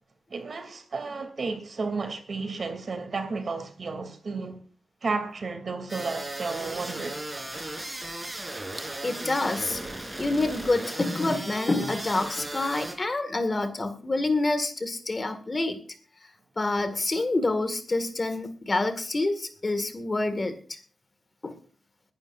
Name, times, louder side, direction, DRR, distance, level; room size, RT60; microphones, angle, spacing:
voice 1, 0.3-4.6 5.0-7.4, right 4 dB, 50° right, 2.7 m, -32 dB
sound 1, 5.9-12.9, right 1 dB, 15° right, 3.5 m, -36 dB
voice 2, 9.0-15.8 16.6-20.8 21.4-21.6, left 2 dB, 30° left, 1.9 m, -27 dB
22.5 x 11.5 x 2.5 m
wide cardioid pair, 105°, 0 cm